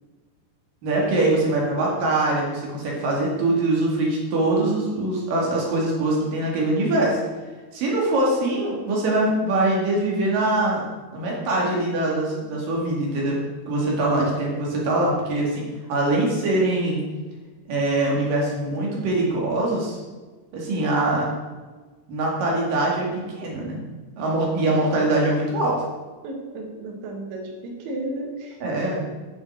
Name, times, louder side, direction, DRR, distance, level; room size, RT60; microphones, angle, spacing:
voice 1, 0.8-7.2 7.7-10.8 11.1-13.4 13.7-17.0 17.7-20.0 20.5-21.3 22.1-23.8 24.2-25.8 28.6-29.0, right 2 dB, 50° right, -3 dB, 3.4 m, -23 dB
voice 2, 26.2-28.6 28.9-29.0, right 1 dB, 70° right, 2 dB, 3.7 m, -33 dB
9.9 x 7.1 x 6.3 m, 1.3 s
omnidirectional pair, 5.6 m